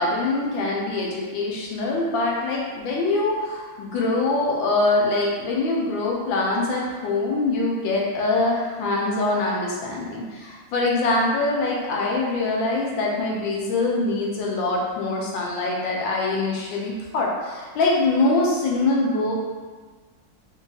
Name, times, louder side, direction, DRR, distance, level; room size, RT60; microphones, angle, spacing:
voice 1, 0.0-19.3, left 2 dB, 75° left, -2 dB, 1.3 m, -24 dB
3.8 x 2.7 x 2.6 m, 1.4 s
omnidirectional pair, 2.3 m